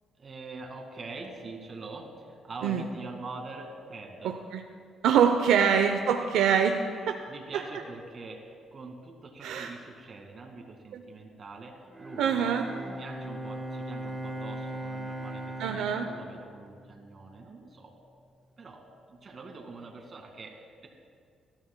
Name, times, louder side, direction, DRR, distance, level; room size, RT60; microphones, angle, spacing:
voice 1, 0.2-4.4 5.5-5.7 6.0-6.3 6.9-12.4 13.0-17.9 18.6-18.8 19.1-20.9, right 3 dB, 45° right, 3 dB, 1.9 m, -44 dB
voice 2, 5.0-6.8 7.1-7.2 9.4-9.7 10.9-11.0 12.2-12.6 15.6-16.1, right 7 dB, 85° right, 5 dB, 0.6 m, -24 dB
Bowed string instrument, 11.9-17.4, right 1 dB, 15° right, 1.2 m, -39 dB
19.5 x 12.5 x 2.2 m, 2.1 s
cardioid pair, 90°, 0 cm